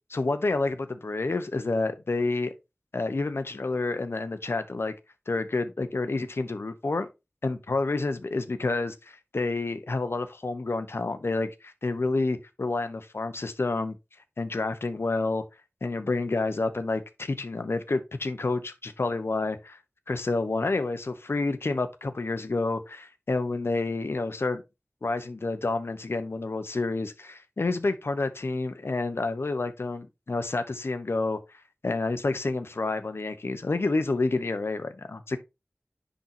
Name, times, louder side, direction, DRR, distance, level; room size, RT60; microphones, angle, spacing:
voice 1, 0.1-2.5 2.9-4.9 5.3-7.1 7.4-13.9 14.4-15.4 15.8-19.8 20.1-24.6 25.0-31.4 31.8-35.4, left 3 dB, 80° left, 1.0 m, -29 dB
10.0 x 4.0 x 2.8 m
wide cardioid pair, 45°, 4 cm